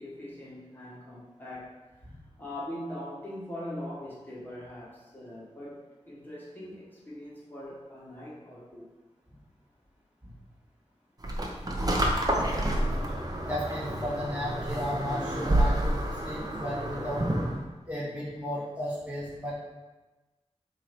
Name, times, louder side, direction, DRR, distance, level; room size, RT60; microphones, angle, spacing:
voice 1, 0.0-2.1 2.4-8.9, left 1 dB, 15° left, -7 dB, 1.8 m, -41 dB
sound 1, 11.2-17.6, right 1 dB, 35° right, 0.9 m, -29 dB
voice 2, 13.4-17.3 17.8-19.5, left 1 dB, 10° right, -7 dB, 1.6 m, -34 dB
7.2 x 2.8 x 5.1 m, 1.2 s
wide cardioid pair, 80°, 12 cm